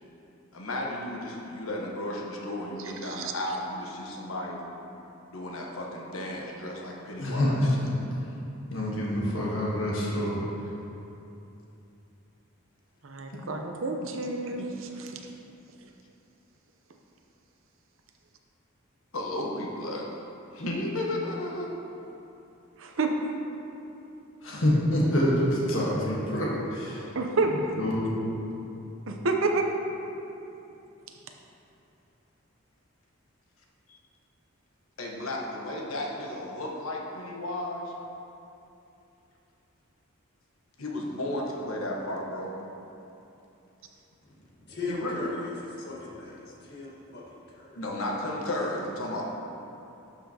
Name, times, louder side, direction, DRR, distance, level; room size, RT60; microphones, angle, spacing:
voice 1, 0.5-4.6 5.3-7.8 14.6-14.7 19.1-20.1 20.5-21.7 33.9-34.0 35.0-37.9 40.8-42.5 44.9-45.2 47.8-49.3, left 1 dB, 85° left, -1 dB, 1.1 m, -33 dB
voice 2, 3.0-3.3 13.0-15.1 22.8-23.1 27.1-27.5 29.1-29.6, right 3 dB, 70° right, 3 dB, 0.7 m, -29 dB
voice 3, 7.2-7.9 8.7-10.4 24.4-27.1 27.8-28.2, equal, 70° left, -5 dB, 1.4 m, -26 dB
voice 4, 44.2-47.8, left 3 dB, 55° left, -5 dB, 1.5 m, -38 dB
12.0 x 5.6 x 2.9 m, 2.8 s
head